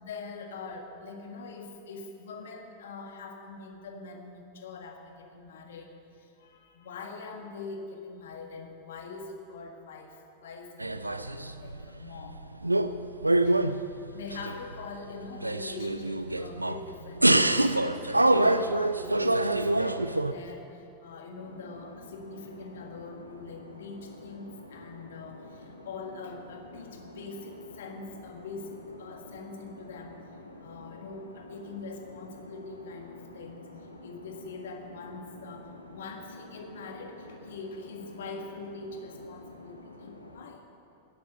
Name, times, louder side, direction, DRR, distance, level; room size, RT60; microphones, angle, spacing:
voice 1, 0.0-12.4 13.4-13.6 14.1-30.2 30.6-33.7 34.0-40.6, left 4 dB, 60° left, 4 dB, 1.5 m, -43 dB
sound 1, 10.8-11.8 12.2-13.0 13.2-14.8 15.3-16.8 17.2-20.3, right 2 dB, 85° right, 0.4 m, -25 dB
sound 2, 21.4-40.5, left 1 dB, 85° left, 1.0 m, -48 dB
11.0 x 10.5 x 6.6 m, 2.7 s
figure-of-eight pair, 90°, 0 cm